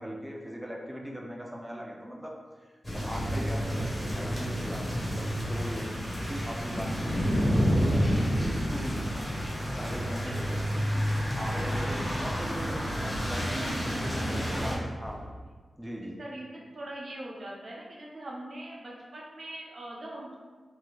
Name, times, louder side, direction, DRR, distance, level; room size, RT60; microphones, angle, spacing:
voice 1, 0.0-2.7 2.9-9.3 9.7-10.6 11.4-15.2 15.8-16.2, equal, 5° right, -1 dB, 0.4 m, -39 dB
sound 1, 2.8-14.8, equal, 25° left, 1.1 m, -29 dB
voice 2, 10.2-10.7 12.6-13.2 13.6-14.6 16.2-20.4, right 1 dB, 60° right, -3 dB, 0.7 m, -42 dB
sound 2, 10.4-10.9 13.1-13.6 15.0-15.4, equal, 45° left, 1.5 m, -45 dB
3.2 x 2.9 x 2.2 m, 1.5 s
cardioid pair, 50°, 0 cm